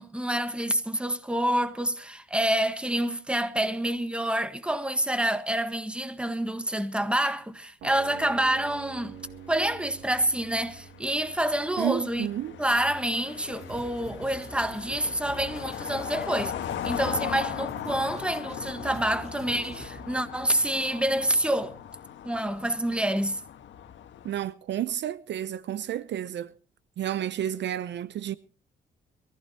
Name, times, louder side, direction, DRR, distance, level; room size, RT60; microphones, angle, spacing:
voice 1, 0.0-9.1 9.5-12.3 12.6-16.5 16.8-21.8 22.2-23.4, right 1 dB, 5° right, 1.5 m, -27 dB
sound 1, 7.8-13.8, right 9 dB, 85° right, 2.1 m, -47 dB
sound 2, 8.0-24.4, left 10 dB, 70° left, 1.6 m, -39 dB
voice 2, 11.8-12.6 24.2-26.5 27.0-28.3, right 11 dB, 65° right, 0.7 m, -31 dB
sound 3, 13.6-20.2, right 2 dB, 35° right, 4.1 m, -46 dB
23.0 x 15.0 x 2.9 m
cardioid pair, 90°, 20 cm